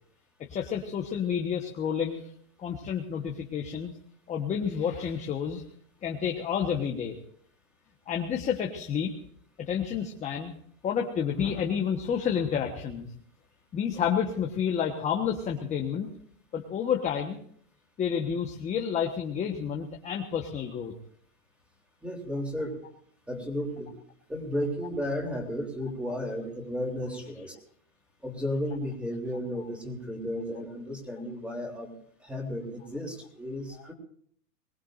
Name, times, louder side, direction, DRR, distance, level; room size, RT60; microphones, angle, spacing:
voice 1, 0.5-2.3 2.6-3.9 4.3-5.6 6.0-7.2 8.1-9.1 9.6-10.5 10.8-13.1 13.7-16.1 16.5-17.4 18.0-20.9 33.7-33.8, left 7 dB, 15° left, 1 dB, 1.3 m, -30 dB
voice 2, 22.0-22.7 23.3-23.9 24.3-27.6 28.2-31.9 32.2-33.9, left 1 dB, 5° right, 1 dB, 3.4 m, -33 dB
23.5 x 20.0 x 2.6 m, 0.63 s
hypercardioid pair, 145°, 43 cm